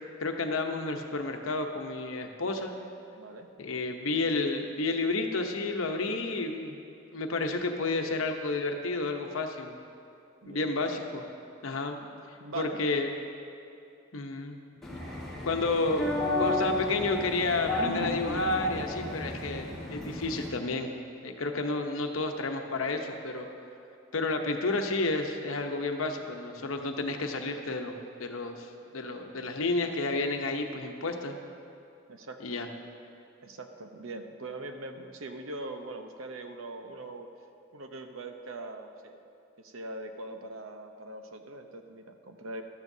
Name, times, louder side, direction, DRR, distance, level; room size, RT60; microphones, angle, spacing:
voice 1, 0.2-2.7 3.6-6.8 7.1-9.8 10.5-11.2 11.6-12.0 12.5-13.1 14.1-14.6 15.4-16.1 16.4-20.9 21.2-23.5 24.1-27.9 28.2-31.4 32.4-32.7, left 3 dB, 85° left, 4 dB, 0.9 m, -31 dB
voice 2, 3.1-3.5 10.4-10.7 12.4-12.8 32.1-32.6 33.4-37.3 37.7-39.1 39.6-42.6, right 2 dB, 90° right, 6 dB, 0.8 m, -41 dB
sound 1, 14.8-20.5, left 2 dB, ahead, 2.3 m, -32 dB
13.5 x 12.5 x 2.7 m, 2.7 s
head